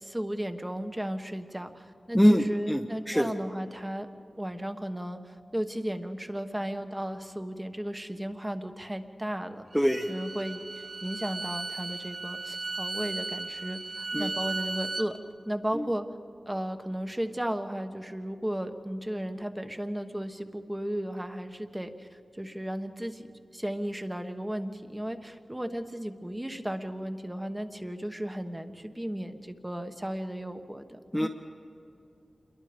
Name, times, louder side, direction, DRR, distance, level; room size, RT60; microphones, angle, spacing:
voice 1, 0.0-4.1 4.4-9.6 10.1-15.2 15.4-16.0 16.5-23.3 23.5-31.3, equal, 10° right, 7 dB, 1.3 m, -35 dB
voice 2, 2.1-3.3 9.7-10.1 14.1-14.3 15.7-15.8 31.1-31.3, equal, 5° left, 2 dB, 0.9 m, -24 dB
Bowed string instrument, 9.7-15.1, right 3 dB, 55° right, 1.5 m, -36 dB
28.5 x 22.5 x 5.2 m, 2.7 s
wide cardioid pair, 95°, 0 cm